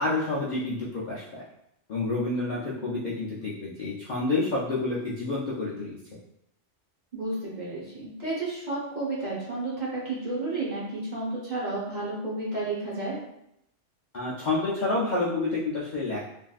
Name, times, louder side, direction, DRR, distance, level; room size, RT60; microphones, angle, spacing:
voice 1, 0.0-1.4 1.9-6.0 14.1-16.3, left 2 dB, 55° left, -7 dB, 0.5 m, -29 dB
voice 2, 7.1-13.1, right 2 dB, 40° right, -7 dB, 0.9 m, -32 dB
3.2 x 2.5 x 2.3 m, 0.79 s
omnidirectional pair, 1.3 m